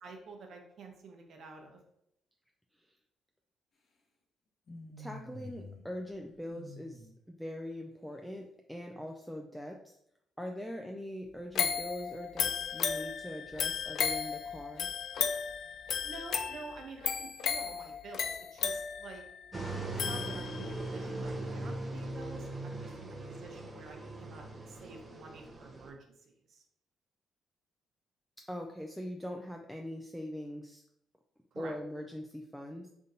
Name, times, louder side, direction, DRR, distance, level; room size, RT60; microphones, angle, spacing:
voice 1, 0.0-1.8 16.0-19.2 19.6-26.1 26.5-26.6 31.5-31.7, right 4 dB, 65° right, 3 dB, 0.8 m, -49 dB
sound 1, 4.7-5.8 6.1-7.1, left 1 dB, 50° left, 1.0 m, -48 dB
voice 2, 5.0-9.9 10.4-14.9 28.4-30.8 31.6-32.9, equal, 5° left, 2 dB, 0.4 m, -42 dB
sound 2, 11.6-20.8 21.3-21.4, left 7 dB, 70° left, 0.4 m, -35 dB
sound 3, 19.5-25.9, right 2 dB, 25° right, 0.7 m, -40 dB
3.5 x 2.7 x 4.0 m, 0.75 s
cardioid pair, 90°, 0 cm